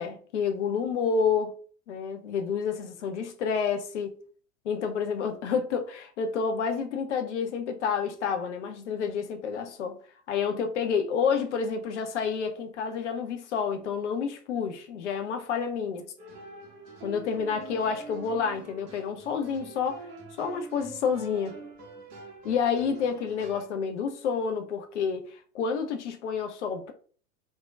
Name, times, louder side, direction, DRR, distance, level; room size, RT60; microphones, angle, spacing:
voice 1, 0.0-1.5 1.9-4.2 4.6-10.0 10.3-16.0 17.0-20.1 20.4-21.6 22.4-26.9, left 6 dB, 50° left, 0.5 m, -29 dB
sound 1, 16.2-23.7, right 3 dB, 25° right, 0.7 m, -45 dB
3.4 x 2.1 x 2.3 m
figure-of-eight pair, 100°, 47 cm